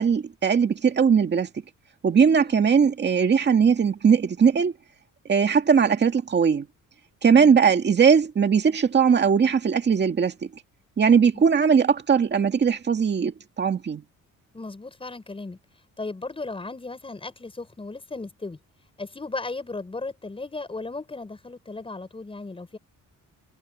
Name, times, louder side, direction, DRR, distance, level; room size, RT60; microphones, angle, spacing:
voice 1, 0.0-1.5 2.0-4.7 5.3-6.7 7.2-10.5 11.0-14.0, right 6 dB, 35° right, 2.0 m, -19 dB
voice 2, 7.3-7.6 14.5-15.6 16.0-18.6 19.0-22.8, left 3 dB, 15° left, 7.4 m, -36 dB
cardioid pair, 155°, 32 cm